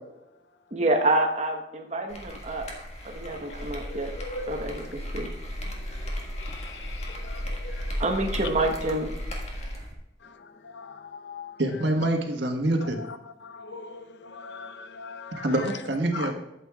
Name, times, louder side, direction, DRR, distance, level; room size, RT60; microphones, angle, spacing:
voice 1, 0.7-2.7 3.0-4.1 4.5-4.8 5.1-5.3 8.0-9.1, right 2 dB, 40° right, 3 dB, 1.1 m, -27 dB
sound 1, 2.1-9.9, equal, 35° left, 1.7 m, -35 dB
voice 2, 3.9-4.6 6.4-7.8 10.7-11.5 13.4-15.4 16.1-16.3, left 4 dB, 75° left, 9 dB, 0.7 m, -40 dB
voice 3, 11.6-13.0 15.4-16.3, right 1 dB, 75° right, 3 dB, 1.5 m, -26 dB
12.5 x 8.3 x 2.4 m, 0.93 s
head